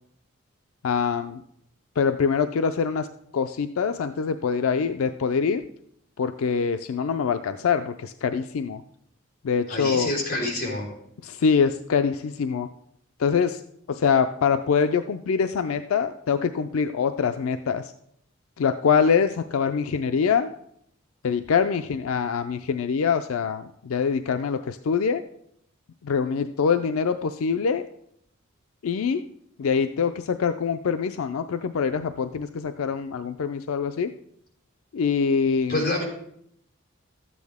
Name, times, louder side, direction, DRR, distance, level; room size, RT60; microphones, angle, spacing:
voice 1, 0.8-1.4 2.0-3.1 3.3-5.6 6.2-8.8 9.4-10.1 11.2-12.7 13.2-13.6 13.9-17.9 18.6-20.5 21.2-25.2 26.0-27.9 28.8-29.2 29.6-34.1 34.9-35.8, left 6 dB, 90° left, 9 dB, 0.4 m, -24 dB
voice 2, 9.7-10.9 35.7-36.0, left 2 dB, 45° left, -2 dB, 3.4 m, -27 dB
13.0 x 8.4 x 3.5 m, 0.71 s
head